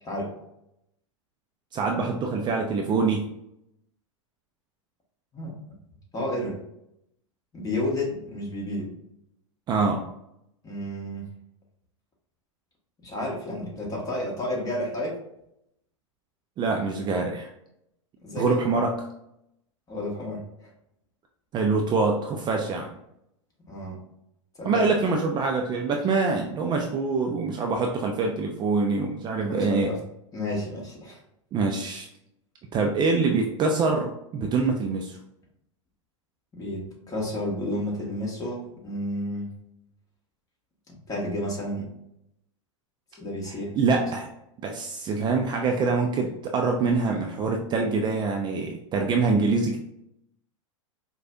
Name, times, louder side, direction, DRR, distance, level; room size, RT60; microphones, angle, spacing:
voice 1, 1.7-3.3 9.7-10.0 16.6-17.5 18.4-19.1 21.5-22.9 24.6-29.9 31.5-32.1 32.7-35.2 43.5-44.3 44.6-49.8, right 4 dB, 25° right, 2 dB, 0.4 m, -25 dB
voice 2, 6.1-6.6 7.5-8.9 10.6-11.3 13.0-15.2 18.2-18.6 19.9-20.7 23.7-24.0 24.5-24.8 29.4-30.0 30.3-31.2 36.5-39.5 40.9-41.9 43.2-43.9, left 1 dB, 20° left, -3 dB, 1.4 m, -31 dB
4.8 x 2.3 x 2.6 m, 0.80 s
hypercardioid pair, 100°, 17 cm